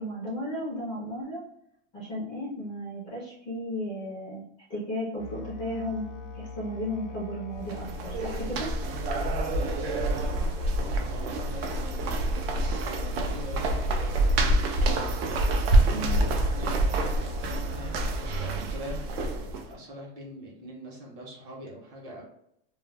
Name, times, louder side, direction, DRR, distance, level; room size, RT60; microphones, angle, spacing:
voice 1, 0.0-1.4 1.9-4.4 4.7-6.1 6.3-8.7 15.9-16.2, equal, 15° left, -7 dB, 0.4 m, -34 dB
Musical instrument, 5.2-17.9, left 3 dB, 85° left, 0.6 m, -41 dB
sound 1, 7.6-19.7, right 1 dB, 60° right, 0.5 m, -27 dB
voice 2, 9.5-14.5 15.1-22.2, equal, 40° right, -2 dB, 0.9 m, -44 dB
2.3 x 2.1 x 3.2 m, 0.76 s
supercardioid pair, 175°, 34 cm